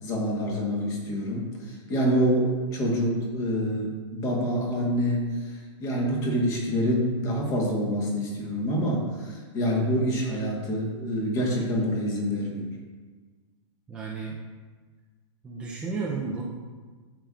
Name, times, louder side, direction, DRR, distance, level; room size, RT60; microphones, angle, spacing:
voice 1, 0.0-12.7, equal, 20° left, -1 dB, 1.3 m, -26 dB
voice 2, 13.9-14.4 15.4-16.4, right 4 dB, 5° right, -5 dB, 0.5 m, -32 dB
10.0 x 7.0 x 2.4 m, 1.4 s
hypercardioid pair, 165°, 16 cm